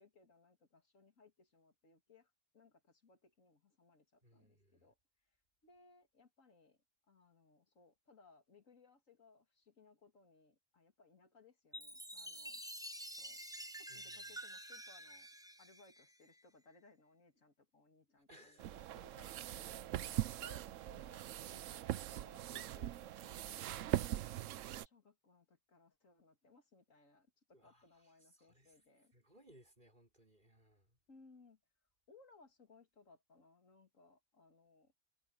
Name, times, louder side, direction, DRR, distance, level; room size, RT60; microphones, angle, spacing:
voice 1, 0.0-5.0 5.6-6.8 7.1-12.6 13.1-13.4 13.8-15.3 15.6-19.3 19.5-20.0 20.3-23.7 24.8-29.1 31.1-31.6 32.1-34.9, left 3 dB, 85° left, 2.8 m, -66 dB
voice 2, 4.2-4.9 13.9-14.4 18.2-20.2 27.5-28.8 29.1-31.0, equal, 40° right, 5.9 m, -66 dB
Chime, 11.7-16.4, right 1 dB, 5° right, 0.7 m, -49 dB
sound 1, 18.6-24.9, right 12 dB, 80° right, 1.0 m, -41 dB
omnidirectional pair, 1.3 m